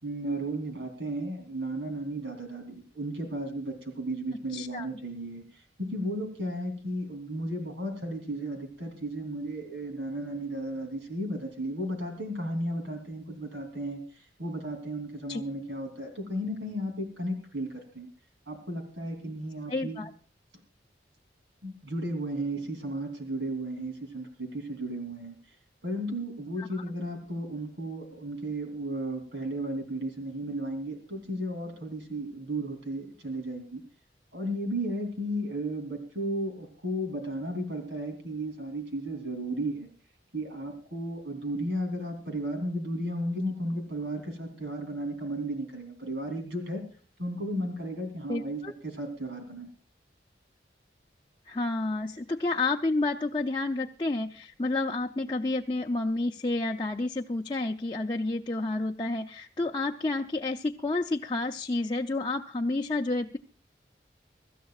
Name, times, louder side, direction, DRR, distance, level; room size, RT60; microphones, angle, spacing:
voice 1, 0.0-18.1 18.5-20.1 21.6-25.4 25.8-33.8 34.3-39.9 40.3-46.8 47.2-49.7, right 1 dB, 90° right, 4 dB, 3.2 m, -34 dB
voice 2, 4.5-4.9 15.3-15.4 19.7-20.1 26.6-26.8 48.3-48.7 51.5-63.4, left 2 dB, 25° left, 2 dB, 0.5 m, -30 dB
24.5 x 13.5 x 2.4 m, 0.37 s
head